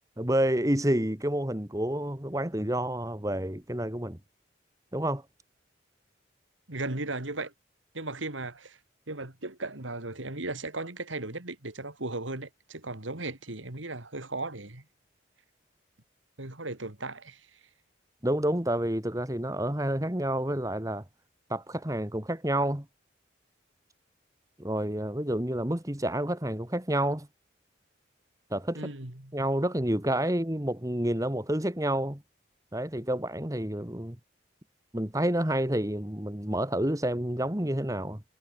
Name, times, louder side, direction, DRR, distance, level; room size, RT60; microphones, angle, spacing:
voice 1, 0.2-4.2 4.9-5.2 18.2-21.0 21.5-22.9 24.6-27.3 28.5-28.9 29.3-32.2 32.7-34.2 34.9-38.2, right 1 dB, 15° right, 1.7 m, -29 dB
voice 2, 6.7-7.5 7.9-8.8 9.1-14.8 16.4-17.6 28.7-29.4, right 2 dB, 85° right, 3.3 m, -36 dB
head